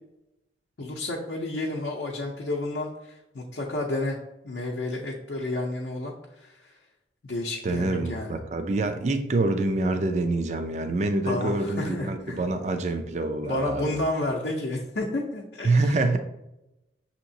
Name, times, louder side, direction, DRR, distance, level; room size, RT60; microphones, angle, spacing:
voice 1, 0.8-4.2 4.4-6.7 7.2-8.3 11.2-12.4 13.4-16.0, left 2 dB, 70° left, -2 dB, 0.6 m, -31 dB
voice 2, 7.6-14.0 15.6-16.2, right 2 dB, 40° right, 7 dB, 0.3 m, -26 dB
6.3 x 2.9 x 2.7 m, 0.90 s
head